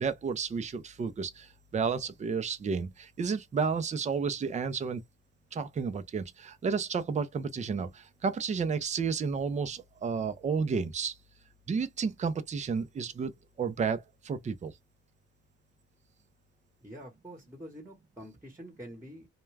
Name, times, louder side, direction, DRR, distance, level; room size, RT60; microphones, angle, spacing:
voice 1, 0.0-5.0 5.5-11.2 11.7-14.7, right 5 dB, 25° right, 0.4 m, -32 dB
voice 2, 16.8-19.3, equal, 10° right, 1.0 m, -46 dB
2.2 x 2.2 x 3.2 m
cardioid pair, 90°, 30 cm